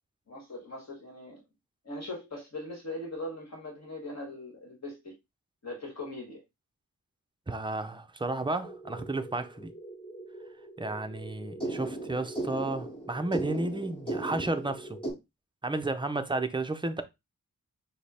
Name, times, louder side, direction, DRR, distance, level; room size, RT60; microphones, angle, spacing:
voice 1, 0.3-1.4 1.8-5.1 5.6-6.4, left 1 dB, 50° left, 1.6 m, -40 dB
voice 2, 7.5-9.7 10.8-15.0 15.6-17.0, right 2 dB, 15° right, 0.5 m, -32 dB
sound 1, 8.6-15.1, right 2 dB, 15° left, 2.8 m, -38 dB
5.1 x 2.1 x 4.2 m
wide cardioid pair, 125°, 34 cm